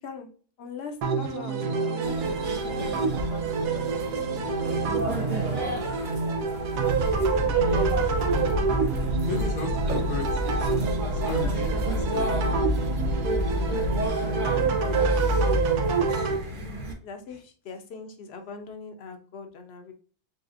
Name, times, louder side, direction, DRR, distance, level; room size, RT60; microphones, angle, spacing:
voice 1, 0.6-3.4 3.7-4.8 5.2-6.2 13.8-14.4 14.9-15.1 15.4-16.0 17.0-19.9, left 4 dB, 55° left, 5 dB, 0.8 m, -42 dB
sound 1, 1.0-16.4, right 4 dB, 85° right, 1.3 m, -27 dB
sound 2, 2.0-16.9, equal, 35° right, 1.0 m, -32 dB
sound 3, 6.9-14.1, left 1 dB, 70° right, 0.8 m, -30 dB
voice 2, 9.3-10.4 11.1-11.6 12.0-12.6 16.3-16.6, left 4 dB, 80° left, 1 dB, 1.5 m, -35 dB
4.1 x 3.4 x 2.5 m, 0.43 s
omnidirectional pair, 1.6 m